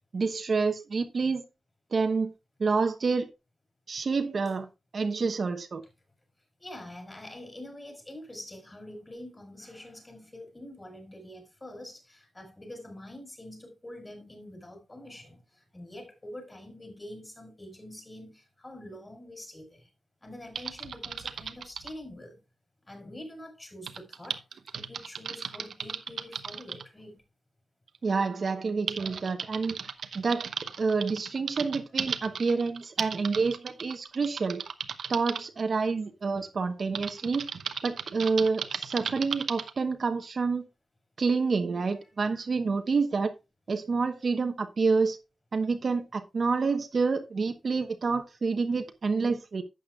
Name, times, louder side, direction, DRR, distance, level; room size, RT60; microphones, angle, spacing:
voice 1, 0.1-1.4 1.9-2.3 2.6-3.3 3.9-4.7 4.9-5.8 28.0-29.8 30.1-30.5 30.8-34.6 35.1-37.4 37.8-40.7 41.2-43.3 43.7-45.2 45.5-49.6, right 4 dB, 50° right, 1.1 m, -28 dB
voice 2, 6.6-19.9 20.2-22.4 22.9-24.4 24.7-27.2, left 1 dB, 20° left, 5.1 m, -45 dB
Typing, 20.6-22.0 23.9-26.8 27.9-28.0 28.5-35.4 37.0-39.7, right 6 dB, 80° right, 0.9 m, -36 dB
12.0 x 8.4 x 2.4 m
wide cardioid pair, 100°, 0 cm